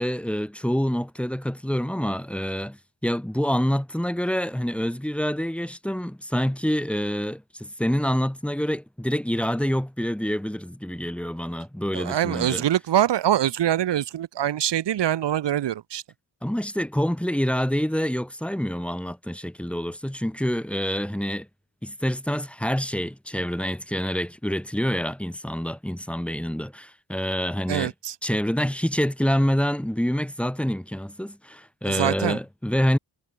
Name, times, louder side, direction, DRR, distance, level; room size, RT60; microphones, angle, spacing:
voice 1, 0.0-12.6 16.4-21.5 21.8-27.9 28.2-33.0, equal, 5° left, 3.8 m, -27 dB
voice 2, 11.9-16.0 27.7-28.1 31.9-32.4, right 11 dB, 85° right, 1.6 m, -24 dB
wide cardioid pair, 130°, 41 cm